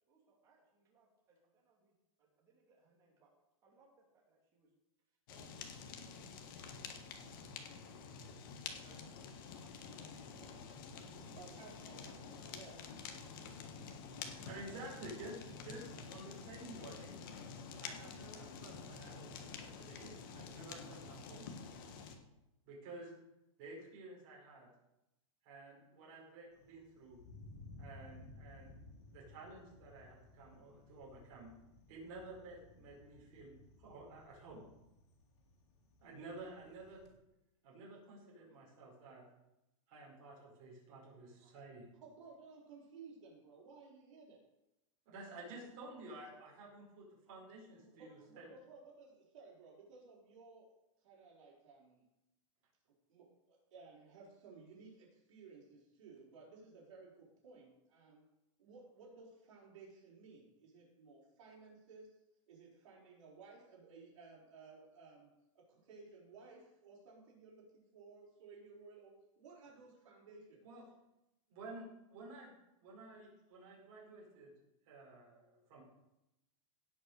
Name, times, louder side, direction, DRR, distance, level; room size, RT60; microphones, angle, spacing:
voice 1, 0.1-3.3 3.6-4.7 5.3-6.6 7.4-8.0 8.8-9.1 9.4-10.1 10.6-10.9 11.4-13.3 14.4-15.6 15.9-16.0, right 4 dB, 20° right, -2 dB, 2.8 m, -69 dB
Fire, 5.3-22.2, left 5 dB, 40° left, 1.4 m, -49 dB
voice 2, 10.9-12.8 42.0-44.4 45.4-45.6 47.8-50.7 51.0-52.1 53.1-58.2 58.6-62.2 62.5-65.3 65.5-70.6, right 4 dB, 60° right, -6 dB, 4.6 m, -57 dB
voice 3, 14.2-15.3 15.6-17.2 17.8-21.5 22.6-23.1 23.6-24.7 25.4-27.2 27.8-28.7 29.1-31.5 31.9-34.6 36.0-37.0 37.6-39.2 39.9-41.8 45.0-48.5 70.6-70.8 71.5-74.5 74.9-75.8, right 2 dB, 35° right, -4 dB, 4.9 m, -52 dB
Thunder, 26.5-37.1, left 2 dB, 60° left, 2.8 m, -58 dB
17.0 x 5.9 x 6.6 m, 0.91 s
supercardioid pair, 180°, 17 cm